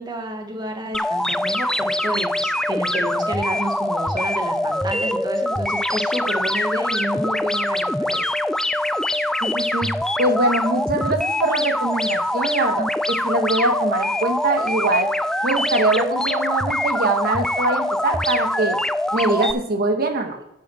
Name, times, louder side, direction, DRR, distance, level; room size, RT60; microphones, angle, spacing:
voice 1, 0.0-8.2, right 1 dB, 20° right, 3 dB, 1.8 m, -30 dB
sound 1, 0.9-19.5, left 1 dB, 5° left, 0.3 m, -23 dB
voice 2, 9.4-9.9 10.2-15.1 15.4-18.8 19.1-20.4, right 2 dB, 55° right, 4 dB, 1.6 m, -23 dB
9.1 x 6.2 x 6.4 m, 0.85 s
head